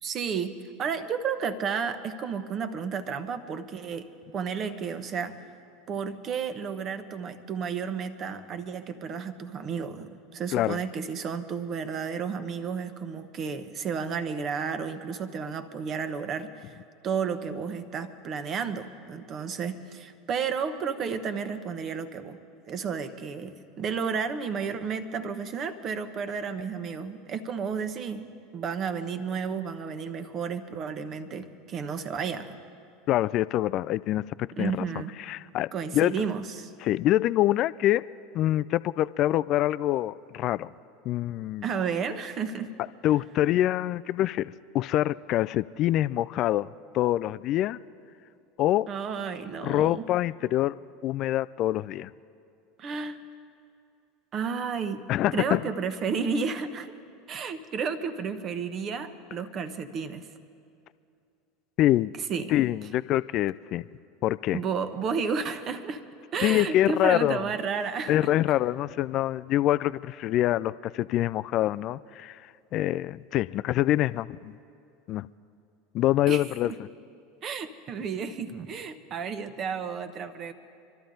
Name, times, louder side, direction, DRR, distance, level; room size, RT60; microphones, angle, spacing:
voice 1, 0.0-4.1 4.3-5.4 5.9-16.8 17.0-22.4 22.7-32.6 34.5-35.1 35.7-36.7 41.6-42.8 48.9-50.0 52.8-53.2 54.3-55.0 55.3-56.9 57.3-60.3 62.3-62.5 64.5-66.0 66.3-68.3 76.3-76.8 77.4-80.5, right 6 dB, 40° right, 10 dB, 1.1 m, -32 dB
voice 2, 33.1-34.9 35.2-36.1 36.8-38.1 38.3-40.7 41.1-41.6 43.0-46.7 46.9-47.8 48.6-48.9 49.6-50.7 51.0-52.1 55.1-55.6 61.8-62.1 62.5-63.8 64.2-64.6 66.4-67.4 68.1-74.6 75.1-75.3 75.9-76.7, left 14 dB, 50° left, 16 dB, 0.3 m, -25 dB
25.5 x 13.0 x 3.9 m, 2.5 s
hypercardioid pair, 80°, 0 cm